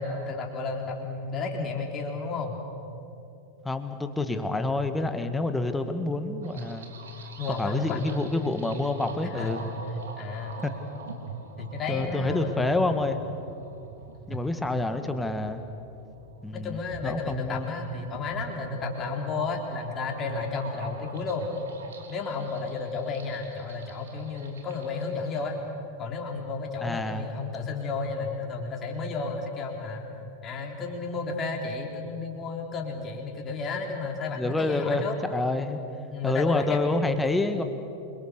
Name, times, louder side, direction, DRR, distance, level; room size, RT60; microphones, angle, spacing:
voice 1, 0.0-2.6 7.4-8.1 9.2-9.7 10.2-10.6 11.6-12.9 14.3-14.4 16.5-21.5 22.1-25.6 26.0-30.0 30.4-35.2 36.1-36.8 37.1-37.3, left 4 dB, 25° left, 1 dB, 3.8 m, -32 dB
voice 2, 3.6-6.9 7.5-9.6 10.6-10.7 11.9-13.2 14.3-15.6 16.4-17.7 26.8-27.3 34.4-35.8 36.2-37.6, left 2 dB, 10° left, 8 dB, 1.9 m, -28 dB
sound 1, 6.4-25.5, right 4 dB, 65° right, 3.2 m, -43 dB
28.0 x 23.0 x 6.9 m, 2.7 s
figure-of-eight pair, 90°, 0 cm